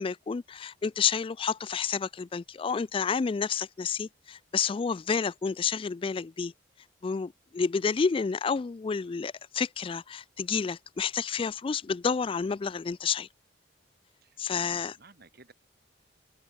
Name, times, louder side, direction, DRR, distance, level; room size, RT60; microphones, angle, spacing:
voice 1, 0.0-6.5 7.0-13.3 14.4-14.9, left 5 dB, 30° left, 0.3 m, -30 dB
voice 2, 14.2-15.5, right 3 dB, 55° right, 3.2 m, -56 dB
head